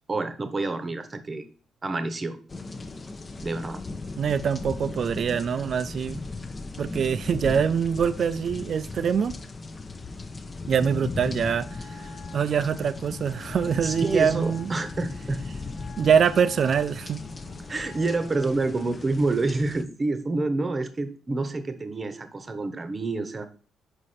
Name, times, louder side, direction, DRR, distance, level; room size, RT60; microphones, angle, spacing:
voice 1, 0.1-1.5 1.8-2.4 3.4-3.8 13.8-15.4 17.7-23.5, right 3 dB, 30° right, 0.9 m, -28 dB
sound 1, 2.5-19.8, left 3 dB, 30° left, 0.6 m, -37 dB
voice 2, 4.2-6.2 6.8-9.3 10.7-11.7 12.3-14.7 16.0-17.2, right 7 dB, 55° right, 0.4 m, -24 dB
Wind instrument woodwind instrument, 11.4-18.7, left 3 dB, 65° left, 1.1 m, -49 dB
5.2 x 4.9 x 4.2 m
cardioid pair, 90°, 0 cm